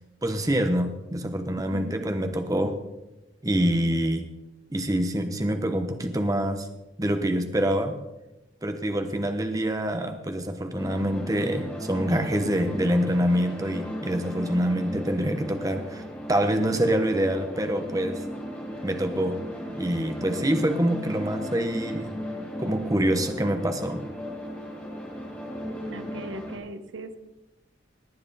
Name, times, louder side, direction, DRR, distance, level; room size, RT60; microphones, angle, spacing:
voice 1, 0.2-2.8 3.4-4.3 4.7-6.7 7.0-8.0 8.6-16.0 16.3-18.2 18.8-19.5 19.8-22.2 22.6-24.1, equal, 20° right, 7 dB, 0.9 m, -26 dB
voice 2, 1.6-1.9 25.9-27.2, right 2 dB, 85° right, 10 dB, 1.0 m, -39 dB
sound 1, 10.8-26.6, equal, 10° left, 2.5 m, -36 dB
18.5 x 9.4 x 4.1 m, 1.0 s
head